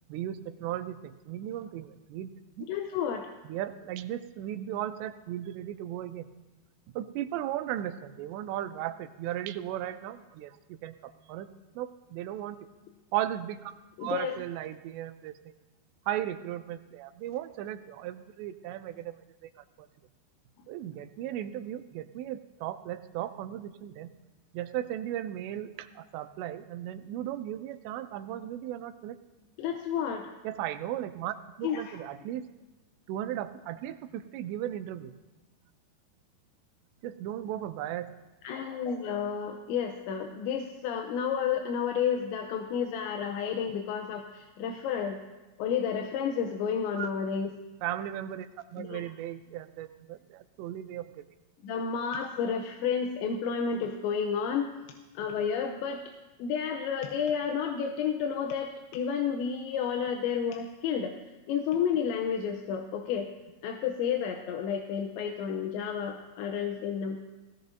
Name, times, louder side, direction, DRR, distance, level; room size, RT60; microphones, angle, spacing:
voice 1, 0.1-2.3 2.6-2.7 3.5-6.3 7.0-11.5 11.8-12.7 13.1-15.3 16.1-19.2 19.8-19.9 20.7-24.1 24.5-29.2 30.4-32.4 33.1-35.1 37.0-38.1 47.0-47.1 47.8-51.2, right 12 dB, 85° right, 10 dB, 2.8 m, -36 dB
voice 2, 2.7-3.3 14.0-14.4 29.6-30.3 31.6-32.0 38.4-45.2 45.6-47.5 48.8-49.0 51.6-54.7 55.1-56.0 56.4-61.2 61.5-63.3 63.6-67.2, left 7 dB, 85° left, 3 dB, 3.0 m, -31 dB
18.0 x 17.0 x 2.7 m, 1.1 s
omnidirectional pair, 5.1 m